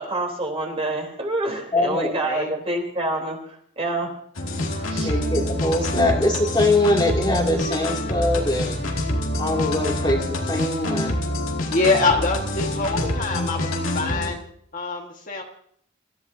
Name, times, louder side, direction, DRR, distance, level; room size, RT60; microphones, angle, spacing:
voice 1, 0.0-3.4 3.8-4.1 4.8-5.1 5.9-6.1, right 2 dB, 30° right, 2 dB, 3.4 m, -27 dB
voice 2, 1.7-2.1 5.0-8.8 9.4-11.2, left 1 dB, 20° left, 0 dB, 2.4 m, -22 dB
sound 1, 4.4-14.3, left 1 dB, 80° left, 2.3 m, -26 dB
voice 3, 11.7-14.5 14.7-15.4, left 3 dB, 40° left, 1 dB, 1.5 m, -24 dB
26.5 x 14.5 x 2.7 m, 0.64 s
head